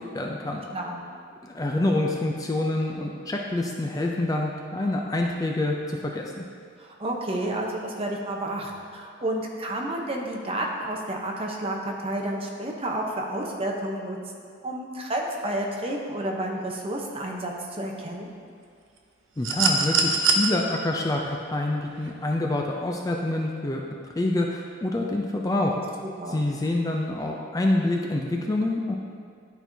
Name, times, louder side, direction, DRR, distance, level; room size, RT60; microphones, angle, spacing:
voice 1, 0.1-0.6 1.4-6.4 19.4-23.8 24.2-25.8 26.3-29.0, left 2 dB, 20° left, 1 dB, 0.4 m, -26 dB
voice 2, 6.8-14.2 14.6-18.3 26.0-26.4, right 1 dB, 30° right, 0 dB, 0.8 m, -30 dB
sound 1, 19.4-20.5 22.0-22.1, right 5 dB, 80° right, 0.7 m, -22 dB
11.0 x 4.5 x 2.7 m, 2.2 s
head